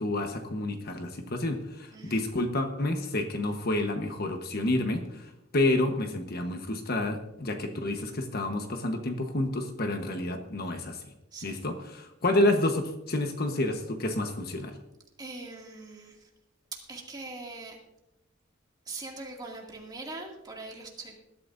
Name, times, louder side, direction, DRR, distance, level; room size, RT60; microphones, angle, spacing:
voice 1, 0.0-11.1 11.4-14.8, left 1 dB, 50° left, 5 dB, 1.2 m, -29 dB
voice 2, 1.9-2.3 11.3-11.6 15.2-16.3 16.7-17.8 18.9-21.2, right 3 dB, 20° right, 0 dB, 2.4 m, -42 dB
20.0 x 12.5 x 2.7 m, 0.88 s
head